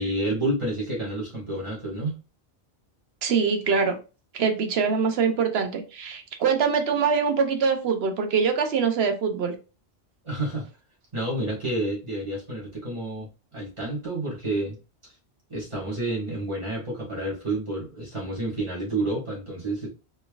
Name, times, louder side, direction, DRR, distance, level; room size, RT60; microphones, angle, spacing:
voice 1, 0.0-2.2 10.2-10.7 11.1-14.8 15.0-15.1 15.5-19.9, right 1 dB, 30° right, -5 dB, 1.7 m, -29 dB
voice 2, 3.2-4.0 4.3-9.5, right 5 dB, 75° right, 6 dB, 1.0 m, -24 dB
4.2 x 3.3 x 2.4 m, 0.32 s
omnidirectional pair, 1.1 m